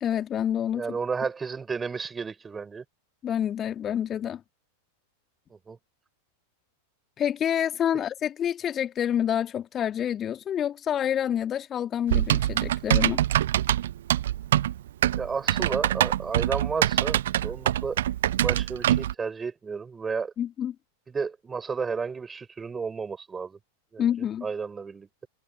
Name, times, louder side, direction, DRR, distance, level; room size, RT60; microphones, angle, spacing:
voice 1, 0.0-1.0 3.2-4.4 7.2-13.2 20.4-20.7 24.0-24.5, left 9 dB, 25° left, 2.1 m, -28 dB
voice 2, 0.7-2.8 5.5-5.8 7.9-8.0 15.2-18.0 18.3-20.3 21.1-23.6 23.9-24.1 24.4-25.1, right 5 dB, 15° right, 6.6 m, -32 dB
Typing, 12.1-19.1, right 12 dB, 60° right, 1.0 m, -24 dB
figure-of-eight pair, 90°, 0 cm